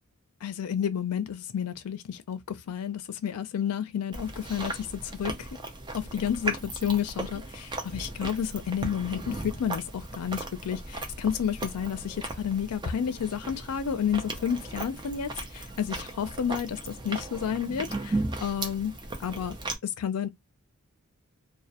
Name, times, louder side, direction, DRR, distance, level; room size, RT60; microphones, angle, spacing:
voice 1, 0.4-5.5 5.9-18.9 19.2-19.6 19.8-20.3, left 8 dB, 90° left, 0.4 m, -31 dB
Chewing mastication, 4.1-19.7, right 2 dB, 20° right, 0.5 m, -36 dB
2.1 x 2.1 x 2.7 m
head